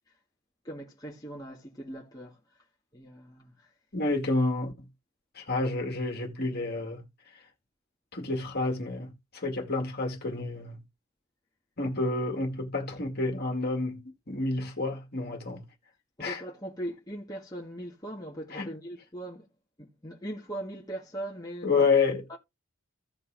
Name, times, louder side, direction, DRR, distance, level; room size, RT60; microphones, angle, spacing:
voice 1, 0.6-2.6 2.9-3.7 16.2-19.5 19.8-21.9 22.3-22.4, right 1 dB, 15° left, 1.6 m, -40 dB
voice 2, 3.9-4.9 5.3-7.0 7.3-7.4 8.1-10.8 11.8-15.7 16.2-16.4 18.5-18.7 21.6-22.2, left 3 dB, 45° left, 2.0 m, -29 dB
16.0 x 5.4 x 2.6 m
head